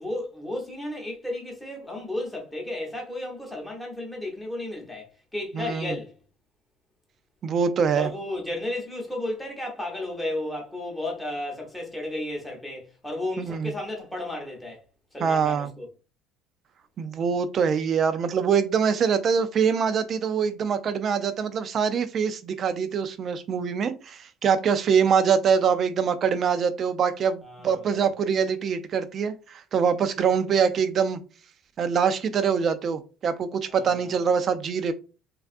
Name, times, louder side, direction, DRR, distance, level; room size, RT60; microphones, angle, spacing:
voice 1, 0.0-6.1 7.9-14.9 15.1-15.9 27.4-28.1 33.7-34.2, left 1 dB, 5° left, 0.8 m, -33 dB
voice 2, 5.5-5.9 7.4-8.1 13.4-13.7 15.2-15.7 17.0-31.2 31.8-34.9, right 6 dB, 35° right, 0.3 m, -24 dB
3.3 x 2.3 x 2.5 m
cardioid pair, 150°, 0 cm